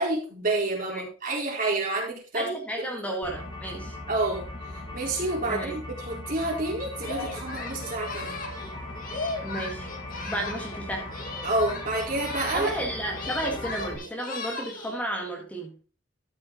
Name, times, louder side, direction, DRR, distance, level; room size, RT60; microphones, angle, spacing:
voice 1, 0.0-2.5 2.8-2.9 4.1-8.4 11.4-12.7, right 2 dB, 45° right, -2 dB, 4.2 m, -29 dB
voice 2, 2.3-4.0 5.5-5.7 9.4-9.9 10.2-11.1 12.5-15.7, right 1 dB, 5° left, 0 dB, 1.9 m, -32 dB
sound 1, 3.2-14.0, left 1 dB, 25° left, 3.5 m, -38 dB
Singing, 7.0-10.8 11.1-12.9 13.1-15.0, left 3 dB, 45° left, 2.1 m, -37 dB
13.0 x 6.2 x 3.9 m, 0.36 s
head